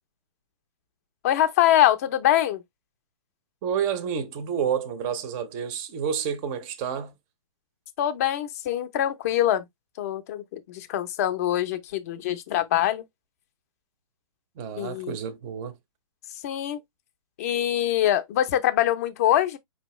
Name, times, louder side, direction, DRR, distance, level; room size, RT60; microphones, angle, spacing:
voice 1, 1.2-2.6 8.0-9.6 10.0-13.0 14.8-15.2 16.4-16.8 17.4-19.6, left 12 dB, 25° left, 0.6 m, -24 dB
voice 2, 3.6-7.1 14.6-15.8, right 7 dB, 15° right, 0.6 m, -29 dB
5.4 x 2.8 x 3.1 m
hypercardioid pair, 170°, 18 cm